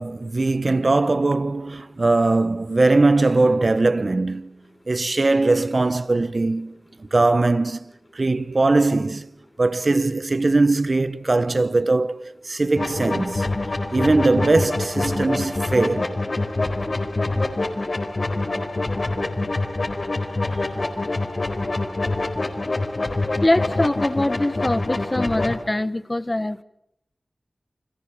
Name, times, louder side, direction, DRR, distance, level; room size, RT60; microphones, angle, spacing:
voice 1, 0.0-4.6 4.9-9.3 9.6-13.5 13.9-16.2, right 2 dB, 60° right, 1.2 m, -20 dB
sound 1, 12.8-25.6, left 2 dB, 65° left, 4.2 m, -25 dB
voice 2, 23.4-26.6, left 1 dB, 30° left, 1.4 m, -23 dB
29.0 x 26.0 x 7.1 m
cardioid pair, 40°, 0 cm